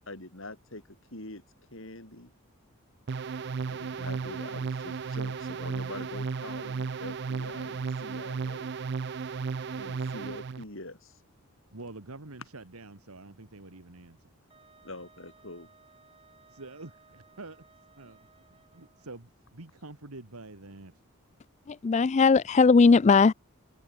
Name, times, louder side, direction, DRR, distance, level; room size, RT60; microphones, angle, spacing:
voice 1, 0.1-0.8 1.1-1.4 1.7-2.3 3.7-8.8 9.7-11.2 14.8-15.7, left 2 dB, 60° left, 4.4 m, -44 dB
sound 1, 3.1-10.6, right 5 dB, 50° right, 0.4 m, -34 dB
voice 2, 11.7-14.3 16.5-17.6 18.0-20.9, right 2 dB, 85° right, 2.0 m, -47 dB
Wind instrument woodwind instrument, 14.5-19.2, right 4 dB, 25° right, 8.0 m, -60 dB
voice 3, 21.7-23.3, left 4 dB, 30° left, 0.3 m, -19 dB
head